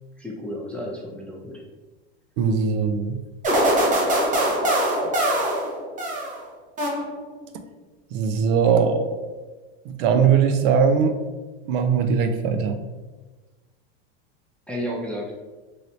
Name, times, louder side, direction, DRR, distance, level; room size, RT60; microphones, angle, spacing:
voice 1, 0.2-1.6 14.7-15.3, equal, 5° left, -3 dB, 0.3 m, -32 dB
voice 2, 2.4-3.2 8.1-9.2 9.9-11.1 11.7-12.8, right 6 dB, 60° right, 7 dB, 0.5 m, -20 dB
sound 1, 3.4-6.4 6.8-7.4, right 1 dB, 25° right, 0.8 m, -22 dB
3.1 x 2.7 x 2.6 m, 1.2 s
supercardioid pair, 120°, 31 cm